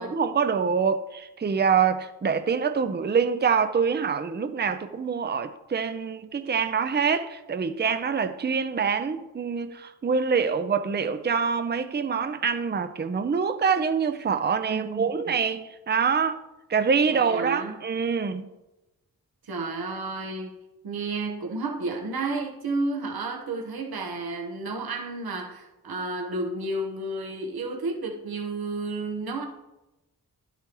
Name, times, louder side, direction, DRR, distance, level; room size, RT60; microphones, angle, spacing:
voice 1, 0.0-16.4 16.7-18.5, right 6 dB, 30° right, 0.6 m, -25 dB
voice 2, 14.7-15.4 17.1-17.8 19.4-20.5 20.8-29.4, right 3 dB, 80° right, 1.1 m, -31 dB
11.0 x 8.2 x 3.0 m
wide cardioid pair, 85°, 36 cm